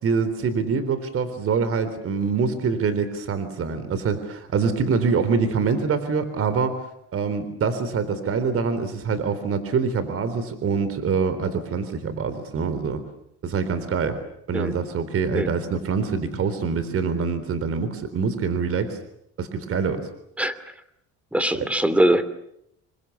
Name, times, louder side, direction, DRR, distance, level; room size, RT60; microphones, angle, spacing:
voice 1, 0.0-6.8 7.1-13.0 13.4-14.2 14.5-19.0 19.4-20.1 21.6-21.7, right 5 dB, 50° right, 11 dB, 3.8 m, -25 dB
voice 2, 21.3-22.2, right 1 dB, 5° right, 13 dB, 2.8 m, -21 dB
28.5 x 24.0 x 7.2 m, 0.76 s
cardioid pair, 125°, 30 cm